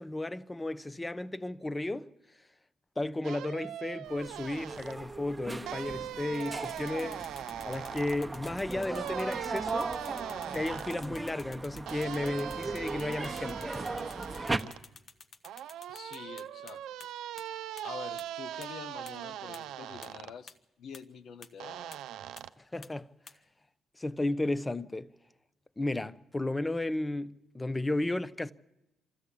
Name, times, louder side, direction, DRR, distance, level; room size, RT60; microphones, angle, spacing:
voice 1, 0.0-2.1 3.0-7.3 7.6-9.9 10.5-13.7 22.7-23.1 24.0-25.1 25.8-28.5, left 2 dB, 15° left, 0.8 m, -34 dB
sound 1, 3.2-4.9 5.7-8.2 8.9-11.0 11.9-14.8 15.4-20.3 21.6-22.5, right 11 dB, 85° right, 0.7 m, -41 dB
sound 2, 4.1-14.6, right 2 dB, 15° right, 1.1 m, -38 dB
sound 3, 6.3-16.7 17.0-17.1 17.4-17.5 17.8-17.9 18.2-18.3 18.6-18.7 19.1-19.2 19.5-19.6 20.0-20.1 20.5-20.6 20.9-21.0 21.4-21.5 21.9-22.0 22.4-22.5 22.8-22.9 23.3-23.4, left 5 dB, 45° left, 1.2 m, -50 dB
voice 2, 15.9-16.8 17.8-22.0, left 7 dB, 70° left, 1.2 m, -46 dB
26.0 x 13.5 x 8.5 m
cardioid pair, 90°, 0 cm